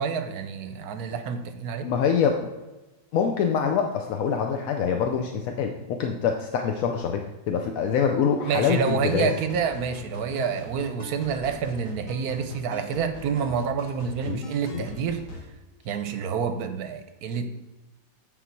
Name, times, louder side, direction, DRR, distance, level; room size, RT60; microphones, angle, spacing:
voice 1, 0.0-1.9 8.5-15.2 15.8-17.5, right 6 dB, 65° right, 7 dB, 1.1 m, -28 dB
voice 2, 1.8-2.5 3.1-9.3 14.3-14.4 14.7-14.9, left 7 dB, 65° left, 4 dB, 0.9 m, -25 dB
sound 1, 8.6-15.5, left 2 dB, 50° left, 1.4 m, -42 dB
9.5 x 4.0 x 4.5 m, 1.1 s
omnidirectional pair, 1.9 m